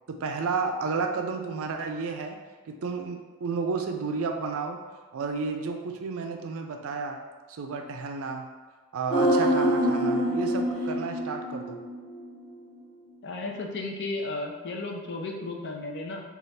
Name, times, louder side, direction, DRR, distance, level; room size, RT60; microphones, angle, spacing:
voice 1, 0.1-2.4 2.7-4.8 5.1-7.2 7.5-8.5 8.9-11.8, right 4 dB, 65° right, 4 dB, 0.4 m, -32 dB
sound 1, 9.1-12.4 12.7-12.8, equal, 35° left, 1.3 m, -26 dB
voice 2, 13.2-16.2, left 2 dB, 50° left, 1 dB, 0.5 m, -34 dB
4.0 x 2.4 x 3.2 m, 1.3 s
head